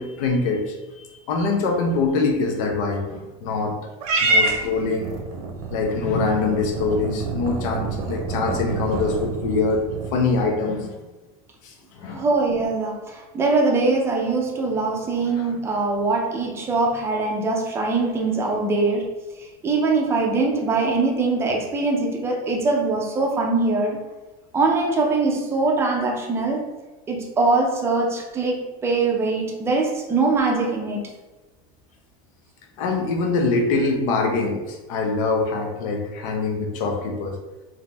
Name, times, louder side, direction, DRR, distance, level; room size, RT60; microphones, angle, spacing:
voice 1, 0.0-3.8 4.2-5.1 5.7-9.8 10.1-11.0 11.6-12.2 15.3-15.5 32.8-37.4, left 3 dB, 65° left, 2 dB, 0.9 m, -24 dB
Purr / Meow, 4.0-10.5, right 3 dB, 80° right, 0.8 m, -27 dB
voice 2, 12.1-13.0 13.3-19.1 19.6-24.0 24.5-26.6 27.1-31.0, right 3 dB, 15° right, 0 dB, 0.6 m, -22 dB
3.7 x 2.8 x 3.4 m, 1.1 s
supercardioid pair, 165°, 19 cm